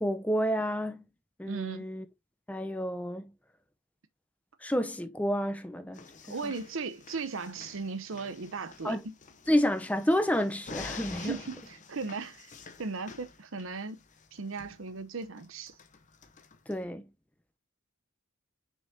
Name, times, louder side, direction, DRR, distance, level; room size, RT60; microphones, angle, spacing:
voice 1, 0.0-1.0 1.4-2.1 2.5-3.3 4.6-6.1 6.4-6.5 8.8-9.0 9.5-11.4 16.7-17.1, equal, 5° left, 0.6 m, -29 dB
voice 2, 1.5-1.9 6.3-9.0 11.2-12.5 12.8-14.0 14.3-15.7, right 4 dB, 65° right, 0.8 m, -37 dB
sound 1, 5.9-16.8, left 4 dB, 35° left, 0.9 m, -48 dB
6.3 x 5.5 x 2.7 m
head